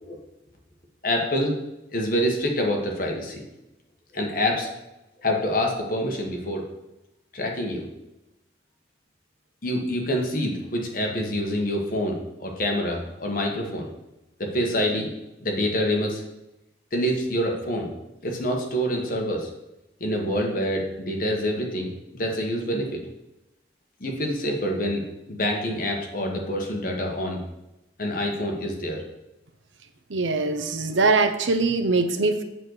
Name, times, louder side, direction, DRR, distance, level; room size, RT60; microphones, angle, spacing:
voice 1, 1.0-1.5 1.9-3.4 4.1-4.7 5.2-6.6 7.3-7.9 9.6-12.1 12.4-13.9 14.4-15.1 15.4-16.2 16.9-17.9 18.2-19.5 20.0-23.0 24.0-25.0 25.3-27.4 28.0-29.0, equal, 50° left, 1 dB, 1.4 m, -26 dB
voice 2, 30.1-32.4, right 3 dB, 90° right, 8 dB, 0.8 m, -22 dB
7.7 x 4.0 x 6.6 m, 0.93 s
head